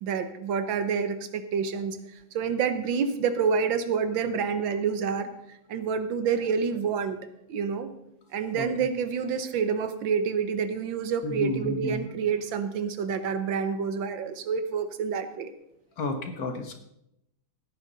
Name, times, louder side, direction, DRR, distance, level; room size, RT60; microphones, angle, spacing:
voice 1, 0.0-2.0 2.3-5.3 5.7-7.2 7.5-7.9 8.3-15.5, right 6 dB, 75° right, 10 dB, 1.6 m, -28 dB
voice 2, 11.2-12.0 16.0-16.7, left 2 dB, 50° left, 5 dB, 1.5 m, -31 dB
16.5 x 9.5 x 4.0 m, 0.80 s
omnidirectional pair, 2.2 m